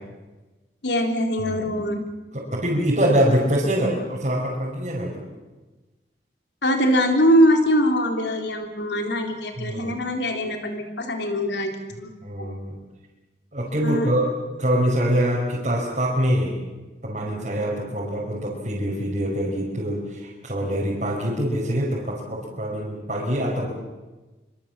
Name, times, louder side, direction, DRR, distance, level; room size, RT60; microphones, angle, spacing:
voice 1, 0.8-2.0 6.6-12.1 12.4-12.5 13.8-14.1, equal, 75° left, 4 dB, 3.7 m, -22 dB
voice 2, 1.4-1.8 2.3-5.2 9.6-10.0 12.2-12.8 13.5-16.6 17.0-23.7, equal, 40° right, -6 dB, 5.4 m, -24 dB
25.0 x 24.5 x 7.5 m, 1.2 s
head